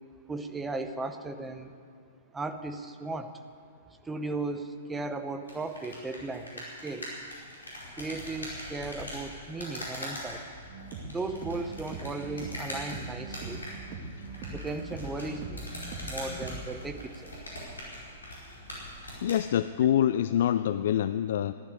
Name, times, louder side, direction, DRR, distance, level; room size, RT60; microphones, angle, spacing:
voice 1, 0.3-1.7 2.3-3.4 4.0-7.1 8.0-10.4 11.1-13.6 14.5-15.7 16.0-17.4, right 3 dB, 10° right, 8 dB, 0.8 m, -36 dB
sound 1, 5.4-19.4, left 1 dB, 80° left, 4.9 m, -42 dB
sound 2, 10.5-16.6, right 3 dB, 40° right, 2.1 m, -41 dB
voice 2, 19.2-21.5, left 10 dB, 55° left, 13 dB, 0.3 m, -25 dB
14.5 x 11.5 x 8.4 m, 2.2 s
figure-of-eight pair, 110°, 0 cm